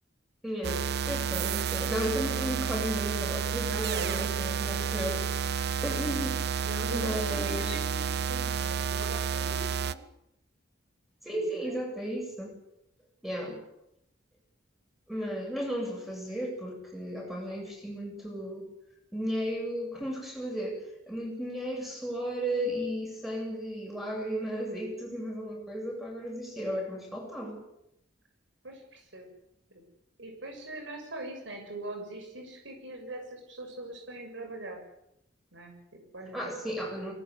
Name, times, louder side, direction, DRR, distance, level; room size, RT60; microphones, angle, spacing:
voice 1, 0.4-5.2 5.8-6.6 6.9-7.8 11.2-12.6 13.2-13.6 15.1-18.7 19.1-27.6 36.3-37.1, equal, ahead, 1 dB, 8.0 m, -34 dB
sound 1, 0.6-9.9, right 6 dB, 55° right, 0.8 m, -30 dB
voice 2, 3.7-4.4 6.6-10.0 11.2-11.8 28.6-29.3 29.7-29.8 30.2-34.8 35.5-36.6, right 1 dB, 70° right, 3 dB, 7.1 m, -41 dB
24.0 x 19.5 x 8.4 m, 0.82 s
head